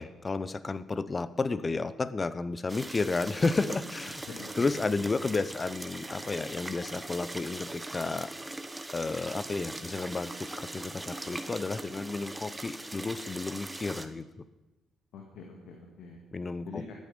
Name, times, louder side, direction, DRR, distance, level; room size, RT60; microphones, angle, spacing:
voice 1, 0.0-4.2 4.6-8.3 8.9-14.2 16.3-16.9, left 3 dB, 30° left, 16 dB, 0.6 m, -32 dB
sound 1, 2.7-14.1, right 1 dB, 15° right, 1.0 m, -41 dB
voice 2, 4.3-5.1 15.1-16.2 16.7-16.9, left 5 dB, 80° left, 1 dB, 1.9 m, -45 dB
13.5 x 10.0 x 5.3 m, 1.1 s
cardioid pair, 90°, 0 cm